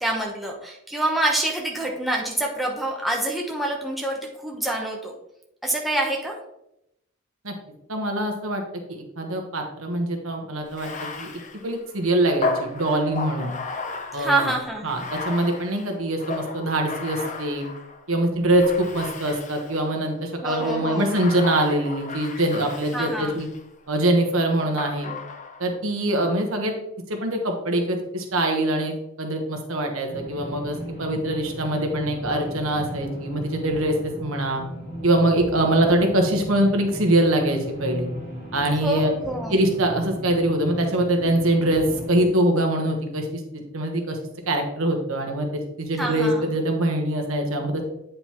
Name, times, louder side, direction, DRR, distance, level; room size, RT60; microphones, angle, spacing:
voice 1, 0.0-5.1 5.6-6.3 14.1-14.9 20.4-21.2 22.9-23.4 38.8-39.5 45.9-46.5, right 1 dB, ahead, -2 dB, 0.9 m, -26 dB
voice 2, 7.9-8.6 8.9-10.9 11.2-11.3 11.6-13.5 14.1-14.5 14.8-17.7 18.1-23.5 23.9-25.1 25.6-26.7 27.1-34.6 35.0-38.1 38.5-39.1 39.5-44.2 44.5-45.5 45.8-47.8, right 1 dB, 70° right, 3 dB, 1.3 m, -23 dB
Bathtub (filling or washing), 10.7-18.0 18.6-19.9 20.4-23.6 24.8-25.7, left 3 dB, 35° left, 0.7 m, -34 dB
sound 1, 30.1-42.3, right 1 dB, 55° left, 1.9 m, -36 dB
8.8 x 5.2 x 3.0 m, 0.81 s
head